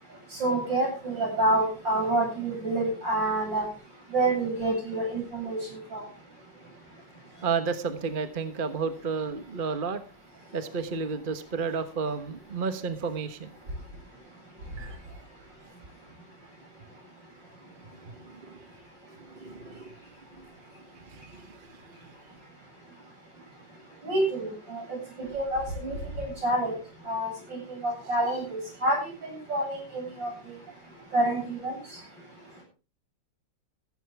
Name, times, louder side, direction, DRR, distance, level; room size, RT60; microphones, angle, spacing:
voice 1, 0.4-3.7 4.1-5.6 5.9-6.1 24.0-25.0 25.3-26.8 27.1-30.3 31.1-31.8, right 2 dB, 85° right, 1 dB, 9.0 m, -28 dB
voice 2, 7.4-10.0 10.5-13.5 14.8-15.0 18.2-18.7 19.3-19.9 20.4-20.5 21.0-21.8, right 5 dB, 30° right, 9 dB, 1.3 m, -32 dB
15.5 x 15.0 x 3.5 m, 0.32 s
omnidirectional pair, 1.9 m